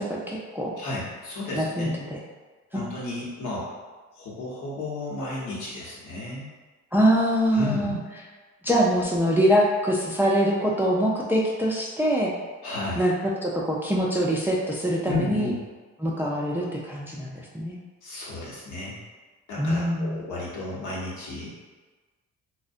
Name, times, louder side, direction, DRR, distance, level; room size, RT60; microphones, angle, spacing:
voice 1, 0.0-0.8 1.6-2.2 2.7-2.8 6.9-8.0 8.6-12.3 13.0-15.5 16.0-17.8 19.6-20.2, equal, 5° right, -4 dB, 0.3 m, -24 dB
voice 2, 0.8-1.9 2.7-3.7 4.1-6.5 7.5-8.0 12.6-13.0 15.1-15.5 18.0-19.0 19.5-21.6, left 2 dB, 80° left, -6 dB, 0.9 m, -33 dB
2.5 x 2.1 x 2.4 m, 1.3 s
cardioid pair, 90°, 30 cm